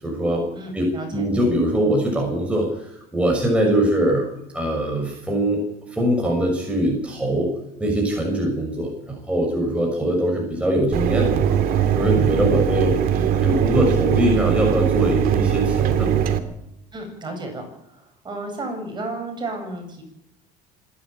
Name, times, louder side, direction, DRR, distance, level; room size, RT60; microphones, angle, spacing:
voice 1, 0.0-0.5 0.7-4.3 4.5-5.6 5.9-7.5 7.8-11.5 11.9-12.9 13.4-16.2, right 1 dB, 5° right, 0 dB, 6.5 m, -22 dB
voice 2, 0.5-1.2 16.9-17.7 18.0-20.0, right 2 dB, 25° right, 4 dB, 8.0 m, -32 dB
Mechanisms, 10.9-16.4, right 9 dB, 55° right, 2.4 m, -20 dB
25.5 x 11.5 x 9.0 m, 0.83 s
cardioid pair, 125°, 18 cm